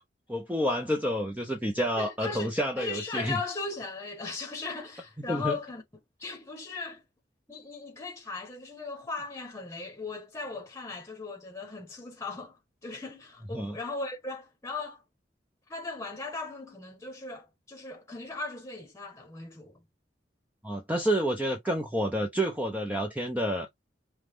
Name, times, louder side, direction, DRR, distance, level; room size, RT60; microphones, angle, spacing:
voice 1, 0.3-3.4 5.3-5.6 13.5-13.8 20.6-23.7, equal, 10° right, 0.8 m, -29 dB
voice 2, 2.0-5.8 6.2-7.0 7.5-15.0 15.7-19.8, left 3 dB, 15° left, 1.2 m, -38 dB
5.6 x 2.5 x 3.5 m
head